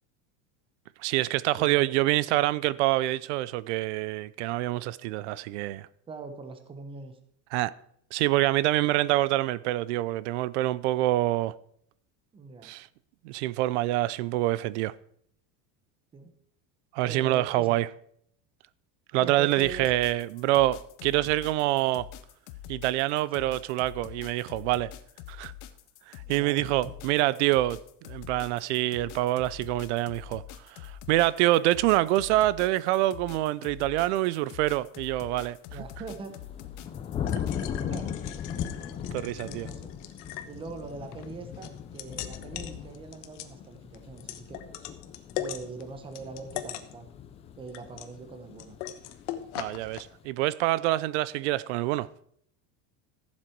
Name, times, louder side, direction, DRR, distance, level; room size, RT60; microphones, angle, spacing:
voice 1, 1.0-5.9 7.5-7.7 8.1-11.5 12.6-12.9 13.2-14.9 16.9-17.9 19.1-22.1 22.7-24.9 25.3-25.5 26.1-27.8 28.0-30.4 30.7-35.8 39.1-39.7 49.6-52.1, right 16 dB, 65° right, 0.6 m, -26 dB
voice 2, 1.6-1.9 6.1-7.2 12.3-12.7 16.1-16.3 17.1-17.8 19.2-19.9 26.2-26.7 35.7-36.3 37.7-38.2 39.4-39.9 40.4-44.6 45.4-47.1 47.6-48.8, right 4 dB, 15° right, 1.0 m, -42 dB
sound 1, 19.5-37.5, left 12 dB, 45° left, 0.8 m, -45 dB
sound 2, 36.0-50.3, left 8 dB, 15° left, 0.4 m, -38 dB
sound 3, 36.7-50.0, left 11 dB, 75° left, 1.2 m, -41 dB
14.5 x 7.5 x 4.5 m
cardioid pair, 175°, 37 cm